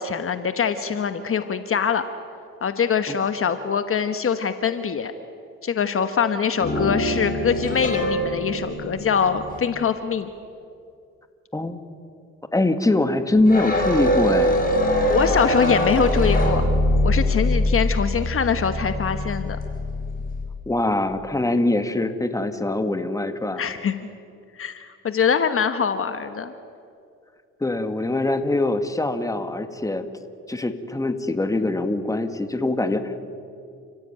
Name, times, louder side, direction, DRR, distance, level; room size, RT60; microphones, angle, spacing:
voice 1, 0.0-2.0 2.6-5.1 5.6-10.3 15.1-16.6 17.0-19.6 23.6-24.1 24.5-26.5, left 6 dB, 45° left, 9 dB, 1.2 m, -23 dB
sound 1, 6.6-9.6 13.4-20.4, left 1 dB, 30° left, 6.1 m, -23 dB
voice 2, 12.5-14.6 20.7-23.6 27.6-30.1 30.5-33.2, left 2 dB, 10° left, 8 dB, 1.8 m, -23 dB
30.0 x 16.0 x 9.1 m, 2.5 s
cardioid pair, 90°, 30 cm